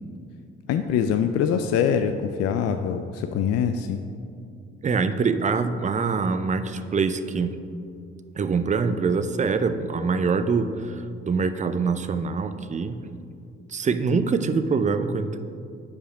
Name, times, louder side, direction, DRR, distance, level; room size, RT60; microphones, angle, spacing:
voice 1, 0.7-4.0 14.1-14.2, left 7 dB, 50° left, 7 dB, 0.4 m, -24 dB
voice 2, 4.8-7.6 8.4-13.0 13.7-15.4, right 5 dB, 25° right, 10 dB, 0.5 m, -24 dB
5.3 x 4.9 x 6.2 m, 2.5 s
figure-of-eight pair, 40°, 32 cm